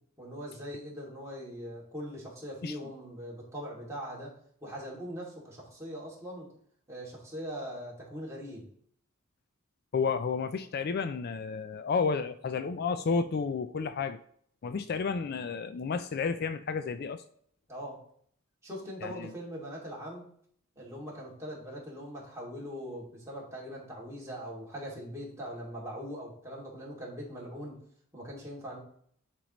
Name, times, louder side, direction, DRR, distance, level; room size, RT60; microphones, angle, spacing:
voice 1, 0.2-4.3 4.6-6.5 6.9-8.7 17.7-18.0 18.6-20.3 20.8-27.8 28.1-28.8, equal, 15° right, 2.4 m, -41 dB
voice 2, 9.9-14.2 14.6-17.2 19.0-19.3, left 5 dB, 50° left, 0.4 m, -31 dB
10.0 x 4.6 x 3.1 m
head